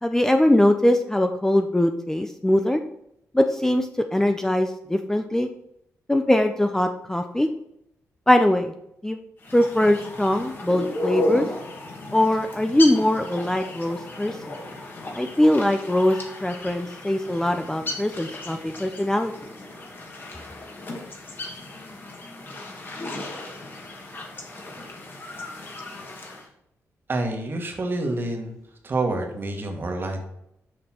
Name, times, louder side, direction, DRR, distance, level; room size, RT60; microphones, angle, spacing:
voice 1, 0.0-2.8 3.3-5.5 6.1-7.5 8.3-8.7 9.0-9.2 9.5-11.5 12.1-14.6 15.1-19.3, left 1 dB, 10° left, 6 dB, 0.4 m, -21 dB
sound 1, 9.4-26.5, left 2 dB, 40° left, 1.5 m, -35 dB
voice 2, 27.1-28.6 28.8-30.2, right 2 dB, 40° right, 3 dB, 1.5 m, -27 dB
6.5 x 5.4 x 4.3 m, 0.78 s
cardioid pair, 110°, 6 cm